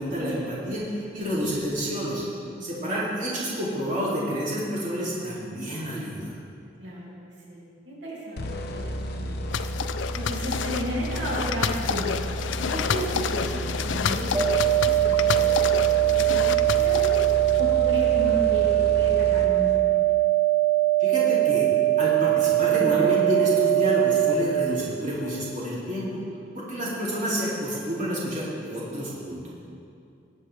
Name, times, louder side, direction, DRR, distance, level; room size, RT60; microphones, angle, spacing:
voice 1, 0.0-2.2 2.6-6.3 21.0-21.7 22.0-26.2 26.5-29.5, equal, 45° right, -8 dB, 2.6 m, -29 dB
voice 2, 2.5-3.0 6.8-9.5 10.1-12.2 12.6-15.7 16.2-17.2 17.6-20.2 26.6-26.8, equal, 75° right, -6 dB, 2.6 m, -34 dB
sound 1, 8.4-20.0, equal, 60° left, 0.8 m, -33 dB
sound 2, 9.5-17.6, left 6 dB, 85° left, 0.4 m, -30 dB
sound 3, 14.3-24.3, right 16 dB, 15° right, 1.6 m, -21 dB
19.0 x 8.1 x 3.3 m, 2.5 s
head